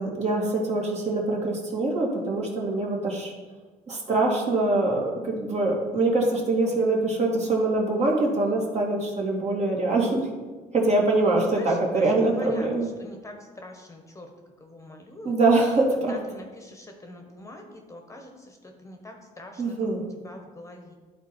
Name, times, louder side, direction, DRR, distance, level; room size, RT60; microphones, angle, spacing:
voice 1, 0.0-3.3 3.9-10.3 10.7-12.9 15.2-16.1 19.6-20.1, right 2 dB, 40° right, -1 dB, 2.2 m, -24 dB
voice 2, 11.5-14.3 14.6-15.3 16.1-19.8 20.2-20.9, left 1 dB, 20° left, 3 dB, 1.2 m, -44 dB
12.0 x 4.1 x 4.5 m, 1.4 s
cardioid pair, 110°, 17 cm